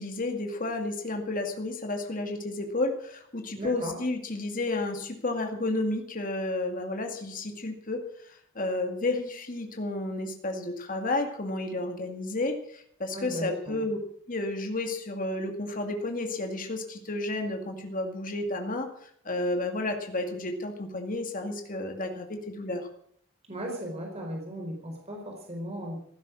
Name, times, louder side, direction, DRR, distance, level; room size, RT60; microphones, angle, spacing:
voice 1, 0.0-14.0 14.3-22.9, left 2 dB, 45° left, 4 dB, 2.3 m, -32 dB
voice 2, 3.5-4.0 13.1-13.8 23.5-26.0, equal, 35° right, 1 dB, 4.3 m, -36 dB
16.0 x 12.5 x 6.3 m, 0.63 s
head